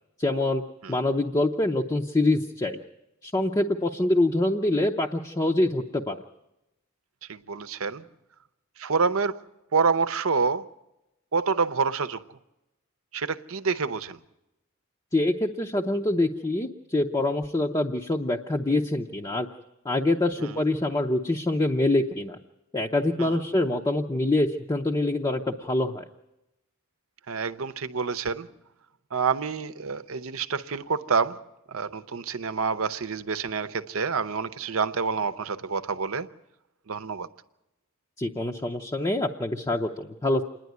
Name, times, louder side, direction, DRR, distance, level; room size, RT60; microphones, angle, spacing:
voice 1, 0.2-0.6 0.9-2.8 3.2-6.2 15.1-19.5 19.8-22.4 22.7-26.0 38.2-40.4, left 2 dB, 20° left, 0.6 m, -25 dB
voice 2, 7.3-8.0 8.8-9.4 9.7-10.7 11.3-12.2 13.1-14.2 20.4-20.5 23.2-23.4 27.3-28.5 29.1-36.3 36.9-37.3, right 5 dB, 75° right, 0.7 m, -27 dB
27.5 x 10.5 x 9.4 m
head